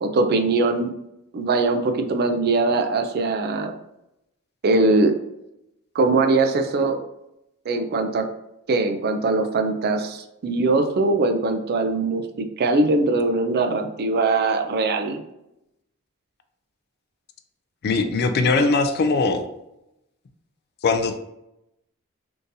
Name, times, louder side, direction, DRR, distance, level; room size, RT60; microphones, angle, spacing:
voice 1, 0.0-0.9 1.3-3.7 4.6-5.1 5.9-7.0 7.7-8.3 8.7-15.2, right 3 dB, 50° right, 6 dB, 0.4 m, -21 dB
voice 2, 17.8-19.5 20.8-21.2, left 3 dB, 50° left, 8 dB, 0.4 m, -20 dB
3.7 x 2.6 x 2.6 m, 0.86 s
head